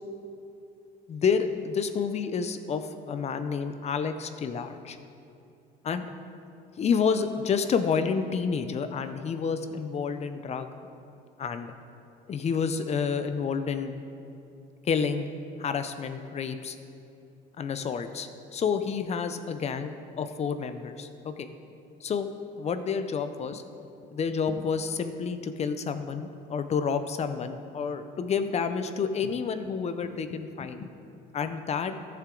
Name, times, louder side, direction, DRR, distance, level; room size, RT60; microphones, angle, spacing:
voice 1, 1.1-5.0 5.8-6.1 6.8-10.7 11.4-11.7 12.3-13.9 14.9-15.3 15.6-16.8 17.6-21.5 22.0-22.3 22.6-23.6 24.1-30.9 31.3-32.0, left 6 dB, 40° left, 9 dB, 0.6 m, -29 dB
14.0 x 6.8 x 3.9 m, 2.6 s
cardioid pair, 110°, 17 cm